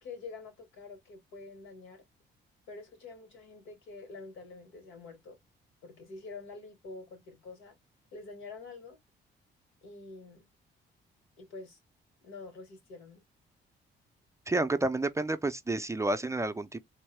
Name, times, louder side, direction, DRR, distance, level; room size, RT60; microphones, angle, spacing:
voice 1, 0.0-2.0 2.7-5.4 5.8-7.8 8.1-9.0 9.8-10.4 11.4-11.8 12.2-13.2, left 3 dB, 90° left, 1.8 m, -47 dB
voice 2, 14.5-16.8, right 2 dB, 15° right, 0.4 m, -30 dB
3.5 x 2.2 x 3.2 m
cardioid pair, 90°, 20 cm